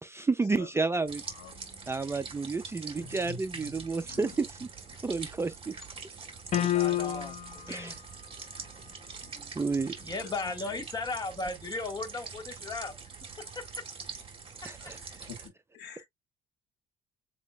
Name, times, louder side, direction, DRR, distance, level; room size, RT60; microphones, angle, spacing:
voice 1, 0.0-1.2 1.9-4.7 5.0-5.8 7.7-7.9 9.5-9.9 14.6-15.0, right 4 dB, 15° right, 0.5 m, -31 dB
sound 1, 1.1-15.5, right 5 dB, 35° right, 1.9 m, -44 dB
voice 2, 1.3-1.9 2.9-4.3 9.2-9.3 10.4-10.8 14.8-14.9 15.3-15.4 15.7-16.1, left 6 dB, 75° left, 1.4 m, -47 dB
voice 3, 6.4-8.0 8.5-9.6 10.0-12.9 13.4-13.7, left 3 dB, 25° left, 1.7 m, -37 dB
sound 2, 6.5-7.6, left 12 dB, 40° left, 0.4 m, -28 dB
7.1 x 2.5 x 2.3 m
cardioid pair, 110°, 17 cm